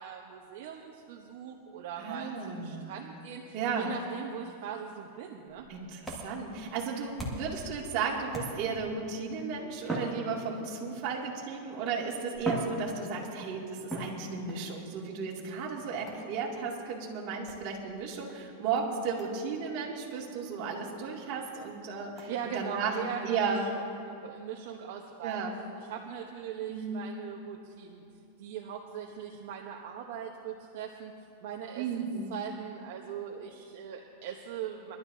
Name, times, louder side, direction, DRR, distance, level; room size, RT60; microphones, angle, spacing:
voice 1, 0.0-5.7 22.3-25.4 25.9-28.0 28.4-31.1 31.4-35.0, right 8 dB, 60° right, 0 dB, 1.1 m, -40 dB
voice 2, 2.0-2.9 3.5-3.9 5.7-23.0 23.2-23.6 25.2-25.6 26.7-27.1 31.8-32.3, right 5 dB, 45° right, -3 dB, 2.4 m, -34 dB
sound 1, 5.5-7.6 8.3-8.9 9.8-10.9 11.7-11.8 12.3-13.4 13.9-14.6 16.1-16.4 17.5-17.7 18.3-18.4 18.7-18.8 19.2-19.3 19.6-19.8 20.2-20.3 20.7-20.8 21.2-21.3 22.2-22.3, equal, ahead, 2.0 m, -39 dB
23.5 x 12.0 x 2.8 m, 2.8 s
supercardioid pair, 155°, 0 cm